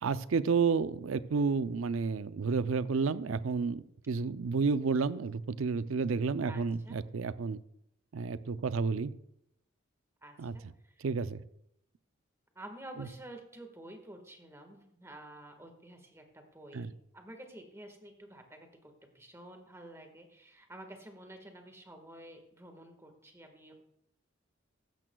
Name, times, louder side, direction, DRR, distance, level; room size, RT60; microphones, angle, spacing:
voice 1, 0.0-7.6 8.1-9.1 10.4-10.5 11.0-11.4 16.7-16.9, right 5 dB, 85° right, 14 dB, 0.5 m, -31 dB
voice 2, 6.4-7.0 10.2-11.1 12.5-23.8, right 1 dB, 15° right, 4 dB, 1.6 m, -50 dB
15.0 x 12.0 x 2.3 m, 0.77 s
head